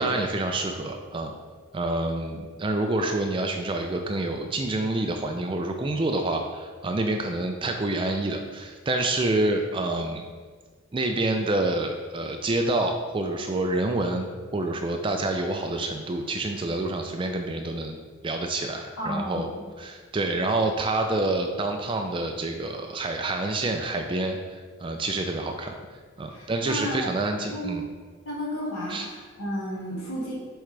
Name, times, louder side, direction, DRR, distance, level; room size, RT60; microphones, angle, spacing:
voice 1, 0.0-1.3 1.7-10.2 10.9-19.5 19.8-24.4 24.8-25.7 26.2-27.8 28.9-29.1, right 2 dB, 25° right, 4 dB, 0.3 m, -27 dB
voice 2, 18.9-19.7 26.3-27.1 27.5-27.8 28.2-30.3, equal, 85° left, -6 dB, 1.7 m, -32 dB
7.8 x 3.8 x 3.2 m, 1.5 s
head